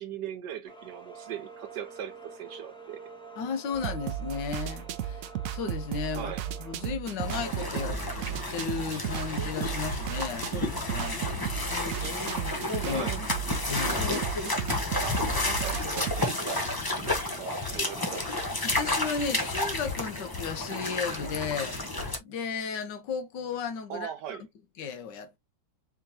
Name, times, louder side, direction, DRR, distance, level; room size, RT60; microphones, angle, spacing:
voice 1, 0.0-3.0 6.1-6.4 12.8-13.2 13.9-18.5 23.9-24.4, right 9 dB, 70° right, 1.3 m, -40 dB
sound 1, 0.6-7.0, right 4 dB, 5° left, 1.0 m, -47 dB
voice 2, 3.4-5.2 5.5-6.3 6.6-8.0 8.5-11.2 12.8-13.0 13.6-14.1 18.6-21.8 22.2-24.1 24.8-25.4, left 6 dB, 75° left, 1.4 m, -34 dB
sound 2, 3.7-16.3, right 11 dB, 85° right, 0.7 m, -35 dB
sound 3, 7.2-22.2, left 2 dB, 30° left, 0.4 m, -31 dB
4.7 x 3.6 x 2.7 m
omnidirectional pair, 2.0 m